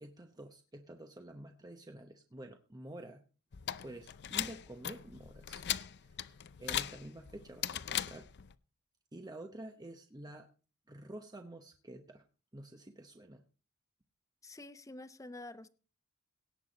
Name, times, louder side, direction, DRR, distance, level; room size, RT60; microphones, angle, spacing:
voice 1, 0.0-3.2 3.8-5.6 6.0-8.3 9.1-10.5 10.9-12.2 12.5-13.4, right 1 dB, 20° right, 5 dB, 0.9 m, -49 dB
sound 1, 3.5-8.5, left 11 dB, 50° left, 0.6 m, -39 dB
voice 2, 14.4-15.7, left 2 dB, 15° left, 13 dB, 0.7 m, -48 dB
17.5 x 8.3 x 4.0 m, 0.37 s
head